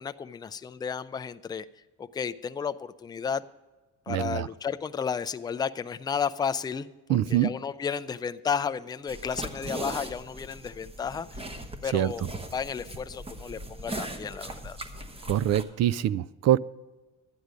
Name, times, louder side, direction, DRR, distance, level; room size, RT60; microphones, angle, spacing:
voice 1, 0.0-1.7 2.0-3.4 4.1-6.9 7.3-11.5 11.8-12.3 12.5-14.8, left 6 dB, 15° left, 11 dB, 0.3 m, -32 dB
voice 2, 4.1-4.5 7.1-7.5 11.9-12.1 15.3-16.6, right 12 dB, 60° right, 21 dB, 0.4 m, -24 dB
sound 1, 9.1-15.6, right 1 dB, 20° right, 1.0 m, -39 dB
11.5 x 9.5 x 5.0 m, 1.2 s
cardioid pair, 120°, 31 cm